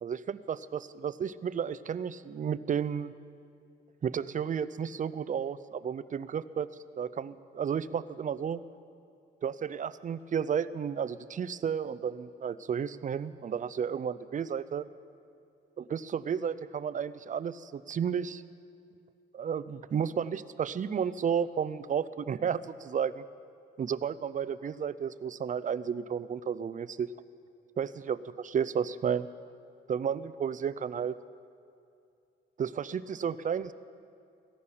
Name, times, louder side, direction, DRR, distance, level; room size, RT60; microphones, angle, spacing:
voice 1, 0.0-3.1 4.0-6.7 7.0-8.6 9.4-14.9 15.8-18.4 19.3-23.2 23.8-27.1 27.8-29.3 29.9-31.2 32.6-33.7, right 7 dB, 40° right, 16 dB, 0.6 m, -32 dB
17.0 x 14.0 x 5.7 m, 2.4 s
cardioid pair, 90°, 20 cm